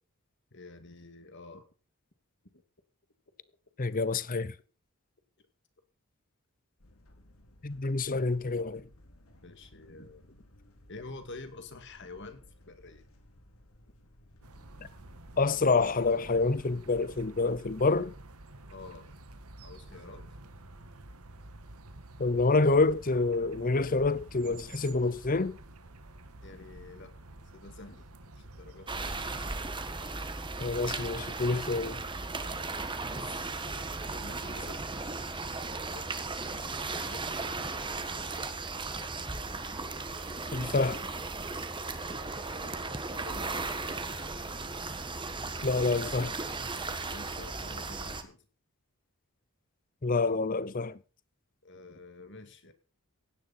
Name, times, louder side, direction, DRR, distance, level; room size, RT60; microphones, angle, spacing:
voice 1, 0.5-1.7 9.4-10.4 10.9-13.0 18.7-19.1 19.6-20.3 26.4-27.3 27.5-28.1 28.4-29.1 30.1-30.3 33.1-35.1 35.7-36.4 36.9-37.4 38.2-38.6 42.5-43.8 46.9-48.5 51.6-52.7, left 3 dB, 55° left, 2.4 m, -49 dB
voice 2, 3.8-4.5 7.6-8.9 15.4-18.1 22.2-25.6 30.6-32.0 40.5-41.0 45.6-46.4 50.0-51.0, left 3 dB, 40° left, 0.7 m, -27 dB
sound 1, 6.8-17.4, left 1 dB, 80° left, 2.9 m, -58 dB
sound 2, 14.4-29.7, right 2 dB, 85° right, 1.7 m, -50 dB
sound 3, 28.9-48.2, right 3 dB, 20° right, 1.5 m, -36 dB
16.5 x 11.0 x 4.3 m
head